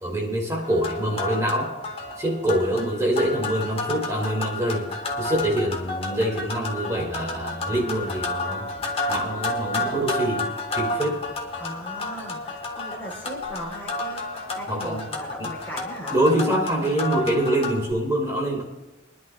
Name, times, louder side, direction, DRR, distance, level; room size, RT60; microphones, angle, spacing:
voice 1, 0.0-1.7 2.2-4.9 5.2-8.7 9.1-11.2 14.7-15.0 15.4-15.5 16.1-18.6, right 1 dB, 15° right, -1 dB, 2.2 m, -25 dB
sound 1, 0.6-17.9, left 2 dB, 30° left, 1.3 m, -31 dB
voice 2, 11.6-16.2, equal, 10° left, -5 dB, 3.5 m, -38 dB
24.5 x 11.0 x 2.3 m, 1.0 s
head